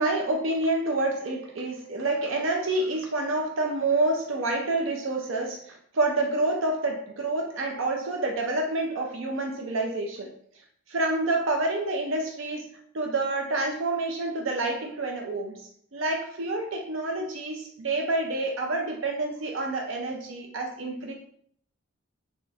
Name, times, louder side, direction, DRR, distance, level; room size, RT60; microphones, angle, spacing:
voice 1, 0.0-10.3 10.9-12.7 12.9-15.6 15.9-21.1, right 2 dB, 70° right, 2 dB, 0.5 m, -28 dB
3.5 x 3.0 x 3.3 m, 0.64 s
head